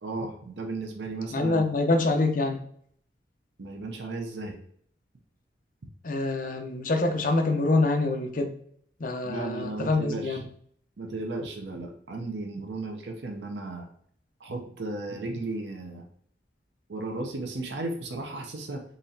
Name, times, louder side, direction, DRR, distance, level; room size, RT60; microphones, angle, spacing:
voice 1, 0.0-1.7 3.6-4.6 9.2-10.4 11.0-13.9 14.4-16.0 16.9-18.8, right 2 dB, 75° right, 0.6 m, -35 dB
voice 2, 1.3-2.6 6.0-8.5 9.0-10.4, left 2 dB, 50° left, 0.6 m, -25 dB
3.9 x 3.0 x 2.7 m
head